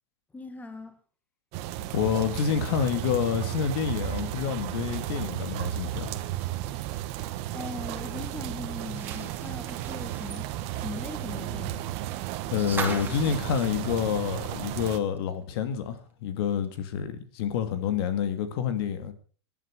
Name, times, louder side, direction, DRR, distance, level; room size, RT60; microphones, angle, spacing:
voice 1, 0.3-1.0 7.0-7.1 7.5-10.5 10.7-12.0, left 3 dB, 10° left, 2.0 m, -40 dB
sound 1, 1.5-15.0, right 13 dB, 45° right, 1.6 m, -34 dB
voice 2, 1.9-6.2 12.5-19.1, left 8 dB, 60° left, 2.4 m, -28 dB
sound 2, 8.8-14.8 15.2-15.3 16.6-16.7, right 4 dB, 15° right, 3.2 m, -40 dB
20.0 x 11.0 x 4.8 m
hypercardioid pair, 120°, 14 cm